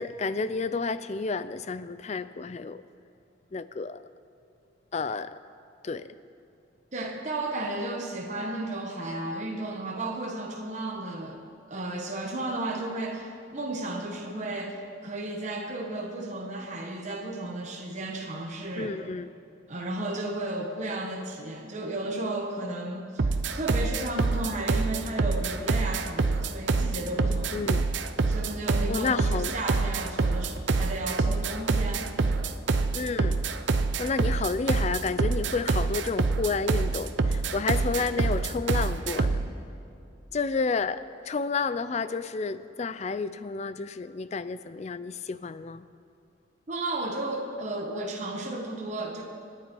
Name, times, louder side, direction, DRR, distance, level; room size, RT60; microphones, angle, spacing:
voice 1, 0.0-2.8 3.5-4.0 4.9-5.3 5.8-6.1 18.8-19.3 27.5-27.8 28.9-29.5 32.9-33.4 34.0-39.4 40.3-45.9, left 4 dB, 35° left, 14 dB, 0.4 m, -31 dB
voice 2, 6.9-11.4 11.7-19.0 19.7-27.5 28.3-32.4 46.7-49.2, right 2 dB, 35° right, 0 dB, 1.3 m, -34 dB
sound 1, 23.2-39.5, right 3 dB, 60° right, 0.6 m, -26 dB
25.5 x 10.5 x 4.6 m, 2.6 s
head